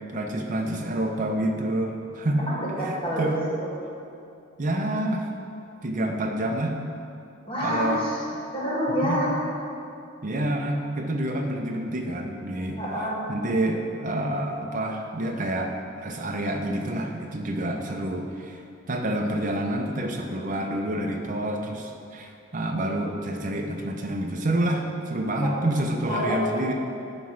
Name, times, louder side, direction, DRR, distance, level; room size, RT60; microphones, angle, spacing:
voice 1, 0.1-2.4 2.8-3.4 4.6-5.3 5.8-6.8 7.6-8.0 9.0-9.2 10.2-12.8 13.3-15.7 16.0-18.6 18.9-26.7, right 1 dB, 40° right, 2 dB, 0.6 m, -28 dB
voice 2, 2.4-3.4 7.5-8.2 8.5-9.3 12.8-13.2 25.4-25.5 26.1-26.4, equal, 25° left, -7 dB, 1.9 m, -27 dB
9.3 x 3.2 x 5.9 m, 2.6 s
head